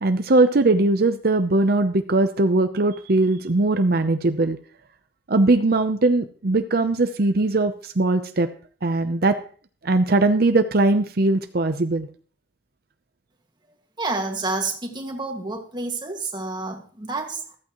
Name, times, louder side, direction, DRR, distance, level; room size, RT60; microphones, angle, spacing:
voice 1, 0.0-4.6 5.3-8.5 8.8-9.4 9.8-12.1, right 2 dB, 55° right, 8 dB, 0.7 m, -20 dB
voice 2, 14.0-17.6, right 3 dB, 25° right, 3 dB, 1.9 m, -29 dB
14.5 x 14.0 x 3.1 m, 0.43 s
head